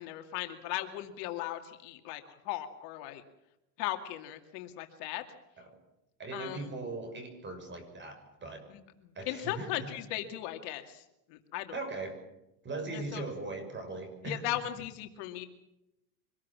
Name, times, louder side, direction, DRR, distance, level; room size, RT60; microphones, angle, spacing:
voice 1, 0.0-3.2 3.8-5.2 6.3-6.7 8.7-11.0 11.3-11.7 12.9-13.2 14.2-15.5, left 14 dB, 55° left, 6 dB, 2.4 m, -38 dB
voice 2, 6.2-8.6 9.1-9.9 11.7-12.1 12.6-14.4, right 3 dB, 20° right, 7 dB, 6.4 m, -39 dB
25.0 x 20.0 x 7.5 m, 0.90 s
supercardioid pair, 130°, 48 cm